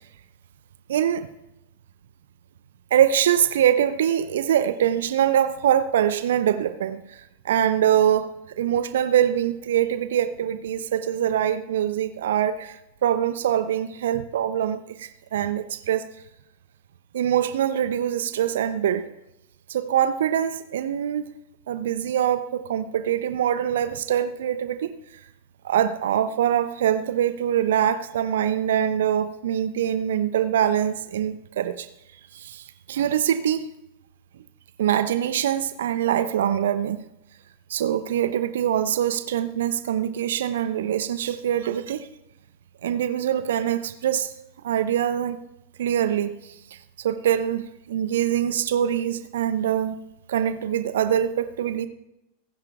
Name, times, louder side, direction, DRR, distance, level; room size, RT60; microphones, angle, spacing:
voice 1, 0.9-1.3 2.9-16.1 17.1-19.1 19.7-21.3 21.7-24.9 25.6-31.9 32.3-33.7 34.8-37.0 37.7-42.1 42.8-44.3 44.6-45.4 45.8-50.0 50.3-51.9, right 10 dB, 60° right, 12 dB, 0.6 m, -24 dB
27.0 x 10.5 x 2.3 m, 0.87 s
figure-of-eight pair, 90°, 0 cm